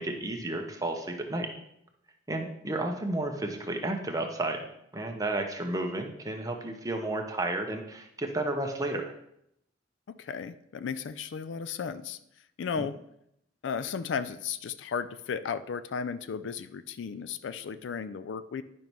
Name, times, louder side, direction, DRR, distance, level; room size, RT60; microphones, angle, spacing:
voice 1, 0.0-1.5 2.3-4.6 4.9-9.1 12.8-12.9, right 2 dB, 20° right, 3 dB, 0.8 m, -32 dB
voice 2, 10.2-12.2 12.6-12.9 13.6-18.6, left 6 dB, 75° left, 13 dB, 0.4 m, -34 dB
10.5 x 5.3 x 3.0 m, 0.77 s
head